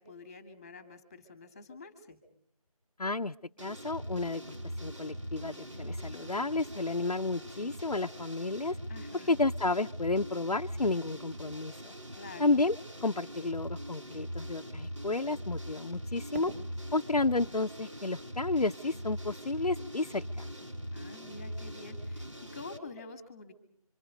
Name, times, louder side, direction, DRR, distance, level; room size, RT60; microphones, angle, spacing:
voice 1, 0.0-2.2 8.9-9.3 12.1-12.5 20.9-23.5, left 3 dB, 10° left, 8 dB, 2.1 m, -48 dB
voice 2, 3.0-3.3 3.6-4.5 4.8-8.8 9.3-11.9 12.4-16.5 16.9-20.5, left 3 dB, 90° left, 2 dB, 0.9 m, -31 dB
sound 1, 3.6-22.8, equal, 55° right, 5.5 m, -42 dB
Fireworks, 16.3-19.4, right 1 dB, 25° right, 4.3 m, -49 dB
27.5 x 26.0 x 5.2 m, 0.65 s
figure-of-eight pair, 170°, 19 cm